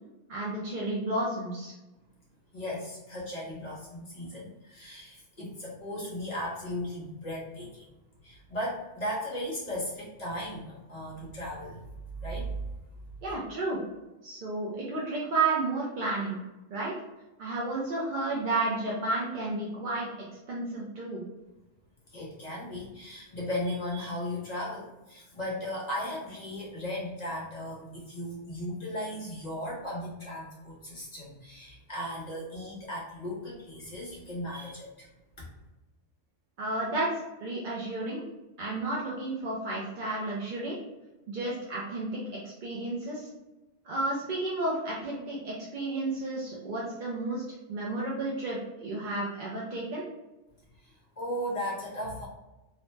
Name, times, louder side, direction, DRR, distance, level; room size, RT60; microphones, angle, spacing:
voice 1, 0.3-1.7 13.2-13.8 14.2-16.4 16.7-16.9 17.4-20.1 20.5-21.2 36.6-37.1 37.4-38.2 38.6-40.8 41.3-43.3 43.8-47.4 47.7-50.0, right 2 dB, 55° right, -4 dB, 0.6 m, -32 dB
voice 2, 2.5-7.9 8.2-11.8 12.2-12.5 22.1-35.1 35.4-35.5 50.8-52.3, left 1 dB, 40° left, -5 dB, 0.8 m, -36 dB
2.8 x 2.1 x 3.1 m, 1.0 s
omnidirectional pair, 1.3 m